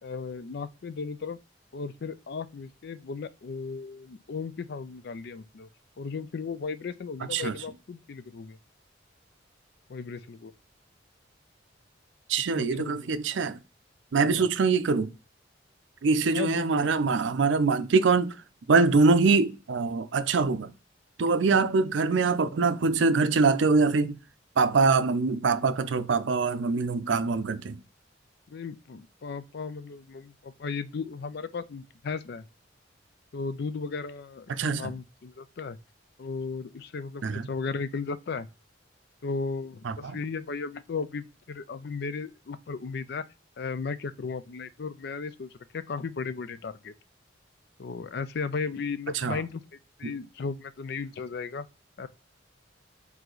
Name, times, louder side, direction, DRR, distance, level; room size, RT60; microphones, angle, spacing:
voice 1, 0.0-1.4 1.7-5.7 6.0-8.6 9.9-10.5 12.5-13.1 14.3-14.5 16.3-16.9 21.5-21.6 28.5-32.5 33.3-35.8 36.2-38.5 39.2-43.3 43.6-46.9 47.8-49.6 50.0-51.7 52.0-52.1, left 4 dB, 55° left, 0.4 m, -35 dB
voice 2, 12.3-13.6 14.1-15.1 16.0-18.4 18.7-20.7 21.2-24.2 24.6-27.8 34.5-34.9 37.2-37.5 39.8-40.2 49.2-49.4 50.0-50.1, right 4 dB, 75° right, 0.5 m, -24 dB
4.8 x 2.7 x 3.9 m
head